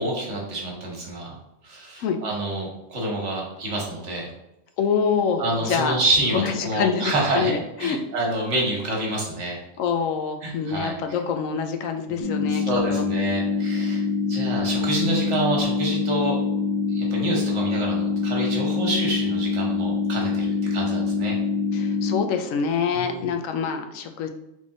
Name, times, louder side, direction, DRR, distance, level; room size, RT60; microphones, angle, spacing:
voice 1, 0.0-1.3 1.6-4.3 5.4-7.5 7.8-9.6 10.4-10.9 12.1-16.4 16.9-21.4 22.9-23.3, right 2 dB, 60° right, -1 dB, 1.3 m, -27 dB
voice 2, 4.8-6.0 6.3-8.0 9.8-13.0 21.7-24.3, left 6 dB, 80° left, 6 dB, 1.0 m, -26 dB
sound 1, 12.2-22.2, left 4 dB, 55° left, 1.4 m, -25 dB
3.7 x 3.3 x 3.8 m, 0.89 s
omnidirectional pair, 1.4 m